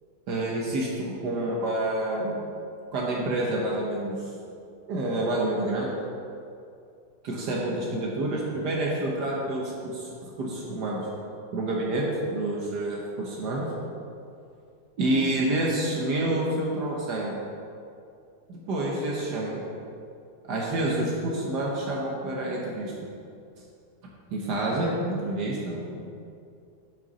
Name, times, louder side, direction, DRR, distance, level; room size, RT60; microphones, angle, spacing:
voice 1, 0.3-2.4 2.9-4.2 4.9-5.9 7.2-11.0 11.5-13.7 15.0-17.3 18.5-19.6 20.5-22.9 24.3-26.0, right 1 dB, 70° right, -3 dB, 1.7 m, -28 dB
9.2 x 6.5 x 4.1 m, 2.5 s
omnidirectional pair, 1.8 m